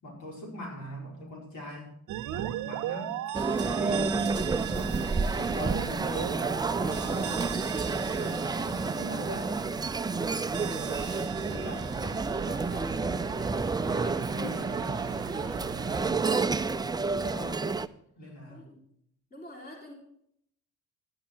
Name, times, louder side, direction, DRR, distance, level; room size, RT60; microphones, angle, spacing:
voice 1, 0.0-1.9 2.3-3.1 3.4-4.1 4.4-7.5 8.1-9.6 10.5-13.4 13.9-15.0 15.7-16.3 17.2-17.7 18.1-18.7, equal, 70° left, -1 dB, 4.6 m, -41 dB
sound 1, 2.1-13.6, right 12 dB, 85° right, 0.8 m, -39 dB
sound 2, 3.3-17.9, right 4 dB, 15° right, 0.5 m, -30 dB
sound 3, 4.0-16.0, right 8 dB, 50° right, 0.7 m, -44 dB
voice 2, 10.5-11.0 18.5-18.8 19.3-19.9, equal, 30° left, -1 dB, 3.9 m, -47 dB
12.0 x 10.5 x 4.5 m, 0.71 s
cardioid pair, 90°, 30 cm